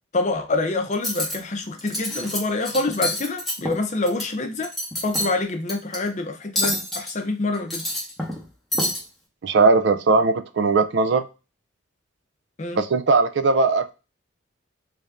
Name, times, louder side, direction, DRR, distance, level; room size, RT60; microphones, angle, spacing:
voice 1, 0.1-4.7 5.0-7.9 12.6-12.8, left 2 dB, 35° left, 0.6 m, -26 dB
Cutlery silverware, 0.9-1.3 1.8-2.4 2.6-4.2 4.6-5.3 5.7-6.0 6.6-7.1 7.5-8.4 8.7-9.0, left 1 dB, ahead, 0.9 m, -27 dB
voice 2, 9.4-11.2 12.7-13.9, right 4 dB, 65° right, 0.4 m, -19 dB
3.3 x 2.7 x 3.4 m
head